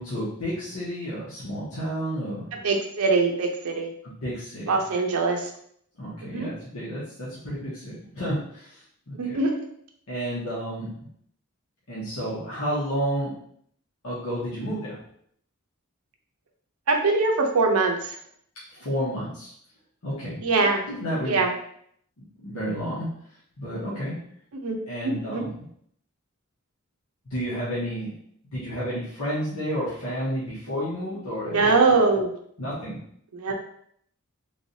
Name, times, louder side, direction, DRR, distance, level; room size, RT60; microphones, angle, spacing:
voice 1, 0.0-2.5 4.0-4.8 6.0-9.4 10.1-11.1 11.9-13.3 14.0-15.0 18.7-19.5 20.0-20.4 20.9-21.4 22.2-23.1 23.6-24.2 24.9-25.7 27.3-28.1 28.5-31.7 32.6-33.0, equal, 85° left, -9 dB, 1.2 m, -31 dB
voice 2, 2.5-3.9 4.7-5.5 6.2-6.5 9.1-9.6 16.9-18.2 20.4-20.8 21.2-21.5 24.5-24.7 25.0-25.5 31.4-32.3 33.3-33.5, right 3 dB, 90° right, 2 dB, 0.6 m, -23 dB
3.4 x 3.1 x 2.7 m, 0.67 s
head